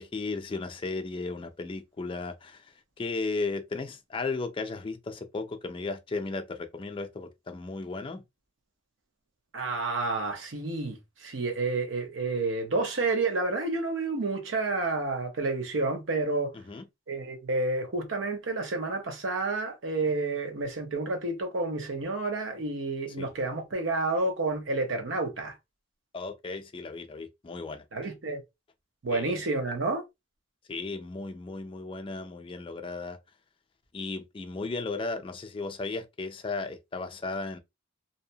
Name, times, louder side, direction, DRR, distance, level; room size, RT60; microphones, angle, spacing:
voice 1, 0.0-8.2 16.5-16.8 23.2-23.3 26.1-27.8 29.1-29.4 30.7-33.2 33.9-37.6, left 3 dB, 25° left, 0.4 m, -35 dB
voice 2, 9.5-16.5 17.1-25.5 27.9-28.4 29.0-30.0, right 3 dB, 90° right, 0.8 m, -30 dB
2.7 x 2.1 x 2.7 m
head